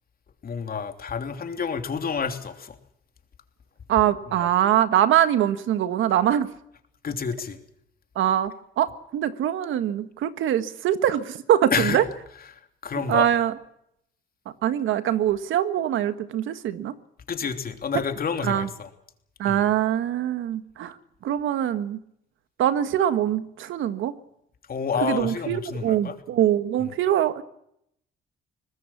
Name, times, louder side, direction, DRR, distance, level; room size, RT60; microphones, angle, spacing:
voice 1, 0.4-2.8 4.4-4.5 7.0-7.6 11.7-12.0 12.5-13.3 17.3-18.9 19.4-19.6 24.7-26.1, left 6 dB, 50° left, 6 dB, 3.2 m, -29 dB
voice 2, 3.9-6.5 8.1-12.0 12.9-13.5 14.6-16.9 18.4-18.7 19.4-20.9 21.2-22.0 22.6-24.1 25.0-27.4, right 11 dB, 80° right, 11 dB, 1.6 m, -23 dB
23.5 x 19.5 x 7.3 m, 0.75 s
cardioid pair, 90°, 20 cm